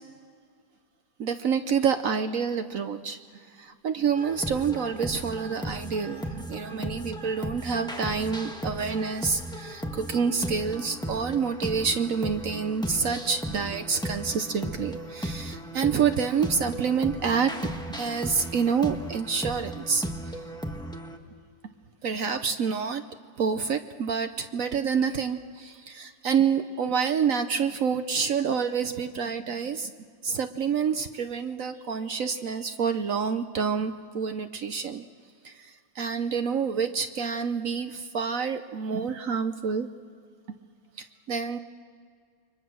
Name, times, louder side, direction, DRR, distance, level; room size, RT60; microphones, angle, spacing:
voice 1, 1.2-3.2 3.5-17.6 17.9-20.3 22.0-23.0 23.4-29.9 30.2-35.1 35.4-39.9 41.0-41.6, right 6 dB, 60° right, 9 dB, 1.0 m, -28 dB
sound 1, 4.2-21.2, equal, 5° left, 1.1 m, -36 dB
29.5 x 23.5 x 6.2 m, 2.1 s
omnidirectional pair, 2.0 m